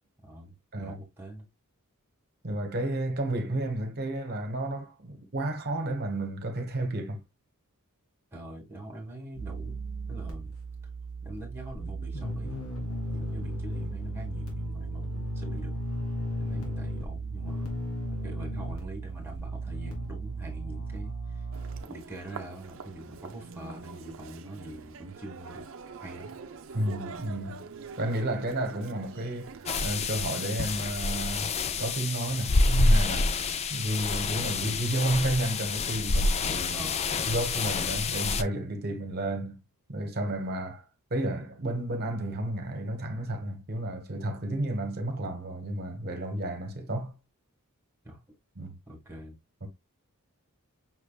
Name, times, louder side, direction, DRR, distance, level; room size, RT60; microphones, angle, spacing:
voice 1, 0.2-1.5 8.3-9.8 10.1-10.5 11.2-12.6 13.1-15.7 16.4-17.7 18.2-21.4 21.8-25.7 26.0-26.4 36.7-37.4 48.0-48.2 48.9-49.4, right 1 dB, 10° right, 1.6 m, -44 dB
voice 2, 2.4-7.2 26.7-27.7 28.0-31.5 31.8-33.3 33.7-36.9 37.3-39.6 39.9-40.8 41.1-47.2 48.6-48.8 49.6-49.7, right 1 dB, 45° right, 1.0 m, -31 dB
sound 1, 9.3-21.8, right 1 dB, 75° left, 1.8 m, -35 dB
Human voice, 21.5-30.3, right 5 dB, 65° right, 0.6 m, -44 dB
sound 2, 29.7-38.4, left 3 dB, 30° left, 0.3 m, -27 dB
5.9 x 3.3 x 2.3 m
head